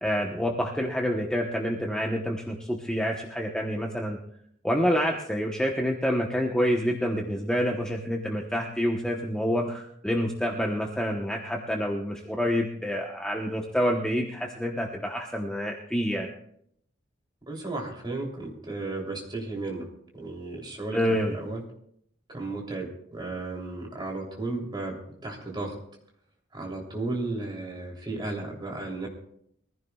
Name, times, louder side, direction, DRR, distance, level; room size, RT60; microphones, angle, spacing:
voice 1, 0.0-4.2 4.6-16.3 20.9-21.3, equal, 5° left, 0 dB, 1.0 m, -27 dB
voice 2, 17.5-19.9 20.1-21.6 22.3-25.0 25.2-25.8 26.5-29.1, right 2 dB, 20° right, -1 dB, 3.2 m, -34 dB
23.5 x 15.0 x 2.4 m, 0.69 s
head